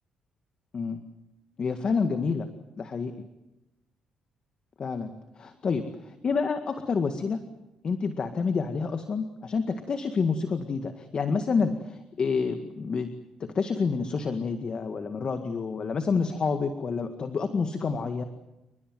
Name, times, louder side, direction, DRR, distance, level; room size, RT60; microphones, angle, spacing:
voice 1, 1.6-2.5 2.8-3.1 4.8-5.9 6.2-7.4 7.8-13.1 13.4-18.2, left 5 dB, 45° left, 7 dB, 1.9 m, -28 dB
29.5 x 20.5 x 7.9 m, 0.98 s
cardioid pair, 85°, 2 cm